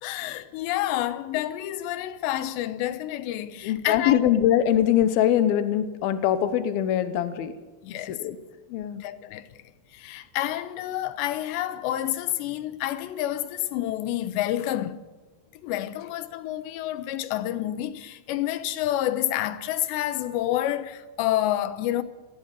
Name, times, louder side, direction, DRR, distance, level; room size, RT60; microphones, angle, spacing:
voice 1, 0.0-4.2 7.8-8.2 8.9-9.5 9.9-15.0 15.6-22.0, left 13 dB, 90° left, 3.2 m, -29 dB
voice 2, 3.6-7.5 8.1-8.4 8.7-9.0, left 10 dB, 70° left, 2.8 m, -22 dB
21.0 x 16.5 x 8.3 m
omnidirectional pair, 4.9 m